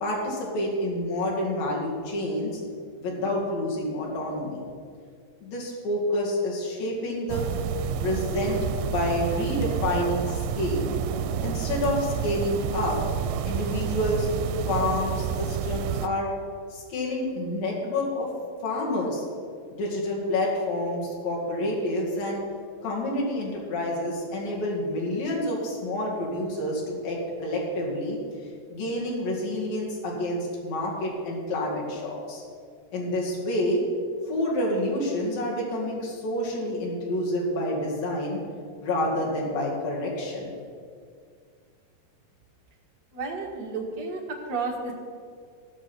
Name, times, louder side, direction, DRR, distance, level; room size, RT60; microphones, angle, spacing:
voice 1, 0.0-2.6 3.0-4.6 5.4-7.5 8.0-10.9 11.4-13.0 13.4-14.3 14.7-16.3 16.7-18.3 18.6-19.3 19.7-22.4 22.8-28.2 28.7-32.4 32.9-33.8 34.3-38.4 38.8-40.5, left 1 dB, 70° left, -3 dB, 3.9 m, -28 dB
sound 1, 7.3-16.1, right 8 dB, 85° right, 2.4 m, -29 dB
voice 2, 43.1-44.9, right 4 dB, 45° right, -2 dB, 1.3 m, -32 dB
16.0 x 6.4 x 6.1 m, 2.1 s
omnidirectional pair, 4.3 m